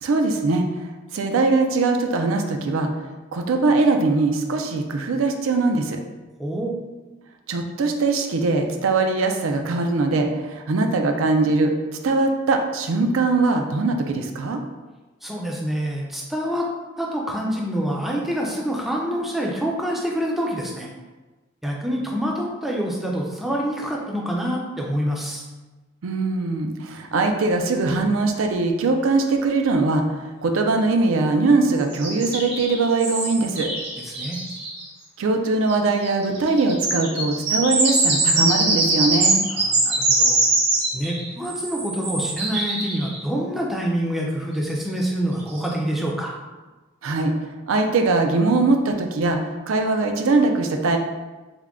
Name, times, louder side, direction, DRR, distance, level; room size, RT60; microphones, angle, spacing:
voice 1, 0.0-2.9 3.3-6.0 7.5-11.7 12.0-14.6 26.0-33.7 35.2-39.4 47.0-47.3 47.7-51.0, right 3 dB, 80° right, 4 dB, 0.4 m, -21 dB
voice 2, 6.4-6.8 15.2-16.7 17.0-20.9 21.6-25.5 34.0-34.4 39.5-40.4 40.9-46.3, equal, ahead, -3 dB, 0.4 m, -26 dB
sound 1, 31.9-34.8 35.7-35.8 36.0-43.2 45.0-45.1 45.5-45.7, right 2 dB, 50° right, 0.8 m, -23 dB
3.6 x 2.2 x 3.5 m, 1.2 s
head